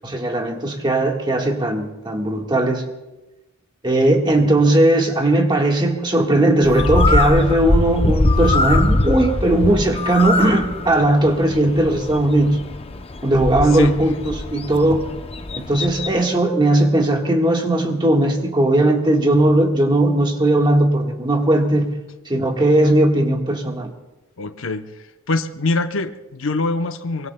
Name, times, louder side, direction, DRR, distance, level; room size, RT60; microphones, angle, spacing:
voice 1, 0.0-2.8 3.8-12.6 13.2-15.1 15.5-21.9 22.3-23.9, right 1 dB, 20° right, 2 dB, 1.5 m, -18 dB
Bird, 6.6-16.2, left 2 dB, 30° left, 0.6 m, -22 dB
voice 2, 24.4-24.8 25.3-27.3, left 3 dB, 70° left, 9 dB, 0.8 m, -23 dB
24.0 x 22.5 x 2.2 m, 1.1 s
head